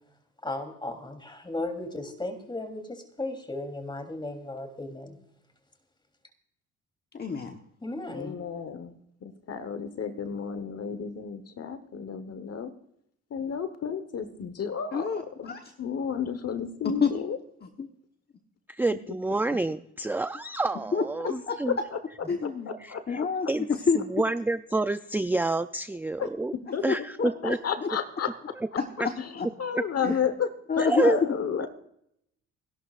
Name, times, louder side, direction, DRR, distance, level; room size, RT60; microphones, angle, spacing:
voice 1, 0.4-5.2 7.8-8.4, left 2 dB, 15° left, 5 dB, 3.3 m, -35 dB
voice 2, 7.1-7.6 14.9-15.7 16.8-17.1 17.6-17.9 20.7-21.8 22.3-22.7 23.1-24.3 26.7-27.9 28.8-29.5 30.0-30.2 30.7-31.1, left 5 dB, 35° left, 4 dB, 1.1 m, -29 dB
voice 3, 8.1-12.7 13.3-15.1 15.4-17.4 21.2-21.3 21.7-21.8 22.4-23.5 26.2-26.3 26.7-26.8 27.2-28.8 29.2-30.5 30.8-31.7, left 7 dB, 55° left, 10 dB, 1.2 m, -32 dB
voice 4, 18.7-21.7 22.8-23.2 23.5-23.7 24.0-26.5 26.8-27.6 29.0-29.1 29.7-29.8 30.8-31.2, right 2 dB, 5° right, 11 dB, 0.4 m, -28 dB
28.5 x 11.5 x 2.5 m, 0.72 s
cardioid pair, 90°, 30 cm